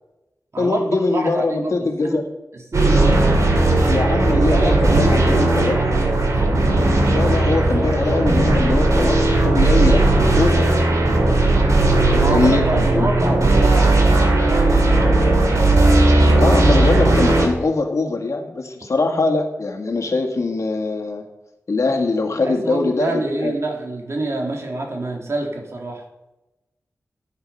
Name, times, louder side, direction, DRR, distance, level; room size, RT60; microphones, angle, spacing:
voice 1, 0.6-2.2 3.8-6.0 7.1-10.1 10.3-10.8 12.3-13.1 16.4-21.2 21.7-23.5, left 3 dB, 75° left, 3 dB, 2.0 m, -22 dB
voice 2, 1.1-2.2 2.7-3.3 4.3-5.8 12.1-15.1 22.4-26.0, right 2 dB, 60° right, 1 dB, 2.8 m, -26 dB
sound 1, 2.7-17.5, right 2 dB, 80° right, 2.8 m, -16 dB
14.5 x 8.8 x 5.5 m, 0.98 s
wide cardioid pair, 95°, 5 cm